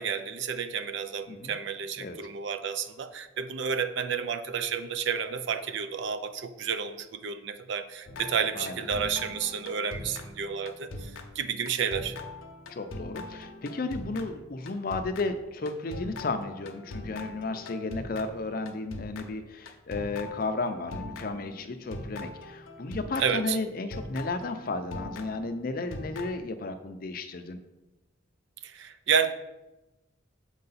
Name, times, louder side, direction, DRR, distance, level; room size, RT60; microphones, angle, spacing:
voice 1, 0.0-12.2 23.2-23.6 28.6-29.3, right 6 dB, 60° right, 11 dB, 0.4 m, -31 dB
sound 1, 8.1-23.5 23.9-26.4, left 2 dB, 75° left, 0.7 m, -42 dB
voice 2, 12.7-27.6, left 3 dB, 45° left, 8 dB, 0.5 m, -33 dB
6.6 x 4.7 x 4.0 m, 1.0 s
head